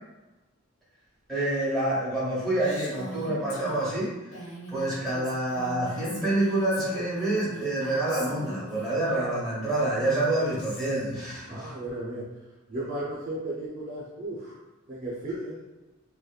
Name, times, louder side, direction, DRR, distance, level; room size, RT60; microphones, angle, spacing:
voice 1, 1.3-4.1 4.7-11.7, right 1 dB, ahead, -8 dB, 0.9 m, -27 dB
Female speech woman speaking, 2.6-8.9 9.8-11.1, equal, 90° left, 1.0 m, -42 dB
voice 2, 11.4-12.4 12.7-14.6 14.9-15.6, right 1 dB, 35° right, -6 dB, 0.4 m, -35 dB
2.8 x 2.1 x 2.3 m, 1.1 s
head